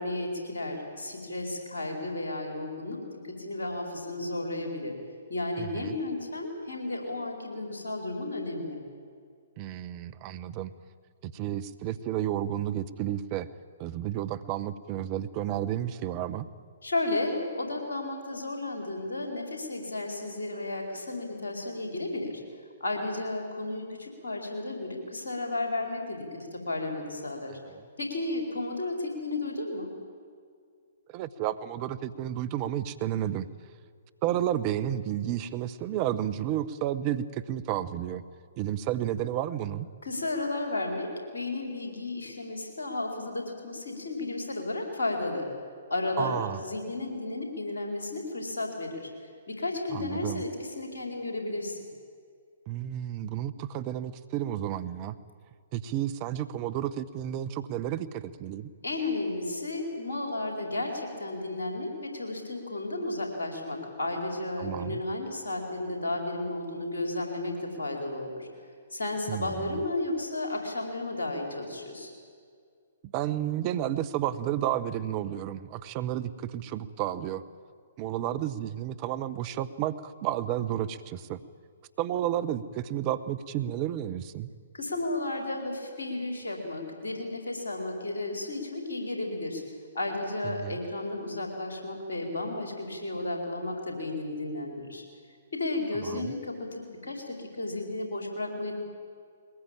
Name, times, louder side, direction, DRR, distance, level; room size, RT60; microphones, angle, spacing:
voice 1, 0.0-5.0 5.3-8.8 16.8-22.4 22.8-27.6 28.0-29.9 40.0-45.5 45.9-51.8 58.8-68.5 68.9-72.1 84.7-89.6 89.9-95.0 95.5-98.7, left 2 dB, 70° left, 3 dB, 4.6 m, -33 dB
voice 2, 5.6-6.0 9.6-10.7 11.2-13.5 13.8-16.5 27.7-27.8 31.1-33.5 34.2-38.2 38.6-39.9 46.2-46.6 49.9-50.4 52.7-55.1 55.7-58.7 64.6-65.0 69.3-69.8 73.0-77.4 78.0-81.4 82.0-84.5 90.6-90.7 96.0-96.3, right 11 dB, 35° right, 13 dB, 1.0 m, -31 dB
22.0 x 20.0 x 9.0 m, 2.2 s
figure-of-eight pair, 120°, 0 cm